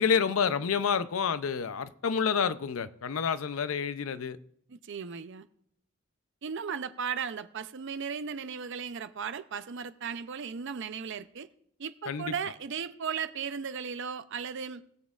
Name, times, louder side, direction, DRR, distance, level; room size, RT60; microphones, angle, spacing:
voice 1, 0.0-4.4 12.1-12.3, left 6 dB, 80° left, 0.5 m, -28 dB
voice 2, 4.7-5.5 6.4-11.5 11.8-14.8, right 6 dB, 60° right, 0.5 m, -36 dB
19.5 x 7.3 x 2.4 m
head